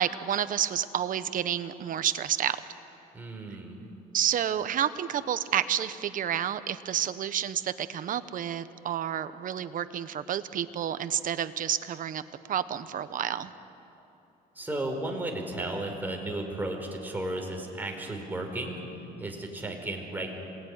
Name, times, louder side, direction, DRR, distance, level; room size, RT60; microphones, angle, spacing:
voice 1, 0.0-2.6 4.1-12.2 12.5-13.5, right 9 dB, 55° right, 13 dB, 1.1 m, -30 dB
voice 2, 3.1-3.8 14.5-18.8 19.2-20.3, right 2 dB, 10° right, 1 dB, 4.9 m, -34 dB
27.0 x 19.5 x 9.8 m, 3.0 s
cardioid pair, 110°, 17 cm